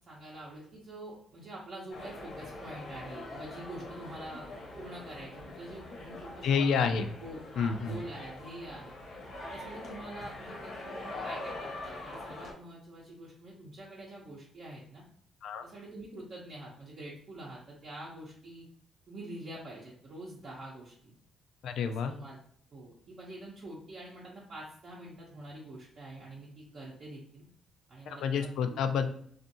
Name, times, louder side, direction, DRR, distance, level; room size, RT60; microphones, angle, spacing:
voice 1, 0.1-4.5 4.8-9.0 9.5-15.0 15.6-18.7 19.1-21.1 22.0-22.4 22.7-27.4 27.9-28.2 28.6-28.8, right 1 dB, 50° right, -5 dB, 0.7 m, -46 dB
sound 1, 1.9-12.5, left 2 dB, 60° left, 0.9 m, -43 dB
voice 2, 6.4-7.1 7.6-8.0 15.4-15.6 21.6-22.1 28.1-29.1, left 6 dB, 75° left, 8 dB, 0.3 m, -29 dB
2.6 x 2.4 x 2.7 m, 0.63 s
cardioid pair, 90°, 0 cm